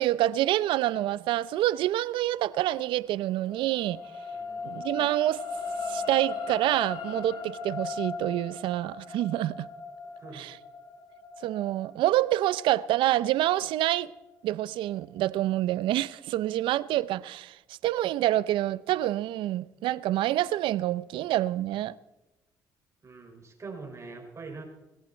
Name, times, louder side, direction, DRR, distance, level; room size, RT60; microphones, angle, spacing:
voice 1, 0.0-4.0 4.6-5.4 5.9-9.7 10.3-10.6 11.4-14.1 14.4-17.6 17.8-21.9, right 14 dB, 75° right, 0.6 m, -27 dB
sound 1, 2.7-15.2 15.7-15.8, left 4 dB, 55° left, 4.9 m, -38 dB
voice 2, 4.3-4.7 10.0-10.5 23.0-24.7, right 4 dB, 35° right, 6.0 m, -43 dB
20.0 x 16.0 x 4.5 m
supercardioid pair, 65°, 9 cm